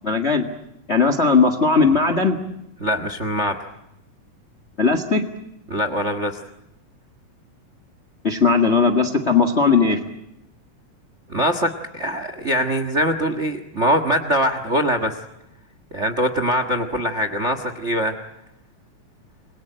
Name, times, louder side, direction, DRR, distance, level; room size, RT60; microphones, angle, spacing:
voice 1, 0.0-0.4 0.9-2.4 4.8-5.2 8.2-10.0, left 4 dB, 30° left, 9 dB, 1.3 m, -18 dB
voice 2, 2.8-3.6 5.7-6.4 11.3-15.2 15.9-18.1, equal, 35° right, 9 dB, 1.1 m, -22 dB
28.5 x 22.0 x 9.0 m, 0.85 s
omnidirectional pair, 3.8 m